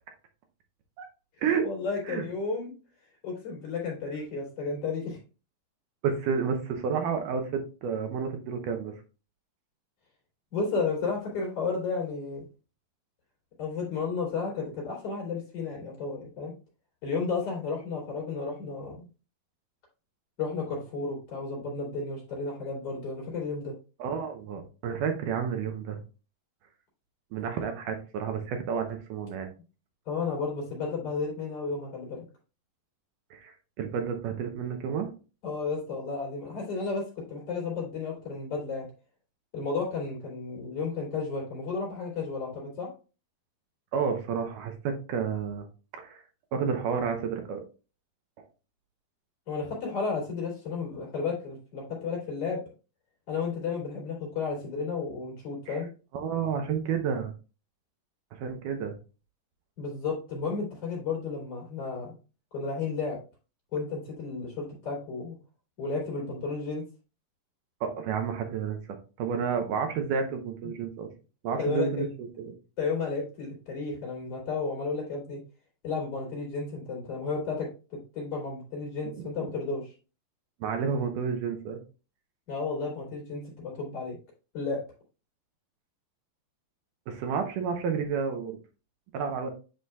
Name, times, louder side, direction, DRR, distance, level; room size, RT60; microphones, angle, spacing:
voice 1, 1.6-2.7 3.2-5.2 10.5-12.4 13.6-16.5 17.0-19.1 20.4-23.8 30.1-32.2 35.4-38.9 39.5-42.9 49.5-52.6 53.3-55.9 59.8-62.1 62.5-63.2 63.7-65.4 65.8-66.8 70.6-70.8 71.6-72.1 72.8-75.4 75.8-79.9 82.5-84.2 84.5-84.8, left 4 dB, 45° left, -3 dB, 3.7 m, -33 dB
voice 2, 6.0-9.0 24.0-26.0 27.3-29.5 33.3-35.1 43.9-45.7 45.9-46.2 46.5-47.6 55.7-55.8 56.1-57.3 58.3-58.9 67.8-71.1 71.4-72.5 79.2-79.5 80.6-81.8 87.1-88.6 89.1-89.5, right 6 dB, 75° right, 5 dB, 2.3 m, -30 dB
9.5 x 4.9 x 2.3 m, 0.33 s
omnidirectional pair, 3.9 m